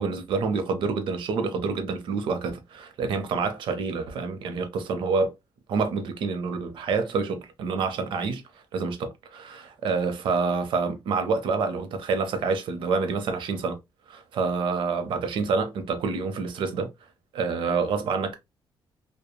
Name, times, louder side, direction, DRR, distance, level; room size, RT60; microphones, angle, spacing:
voice 1, 0.0-5.3 5.7-8.4 8.7-13.8 14.1-16.9 17.3-18.3, right 4 dB, 75° right, 0.6 m, -27 dB
3.0 x 2.2 x 2.2 m
cardioid pair, 135°, 9 cm